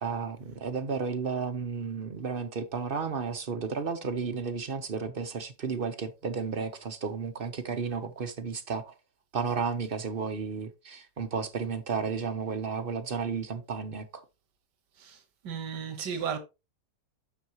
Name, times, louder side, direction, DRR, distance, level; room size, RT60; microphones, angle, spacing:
voice 1, 0.0-8.9 9.3-14.2, right 5 dB, 40° right, 0.9 m, -33 dB
voice 2, 15.0-16.4, right 7 dB, 85° right, 1.9 m, -35 dB
9.2 x 6.3 x 3.0 m
omnidirectional pair, 1.8 m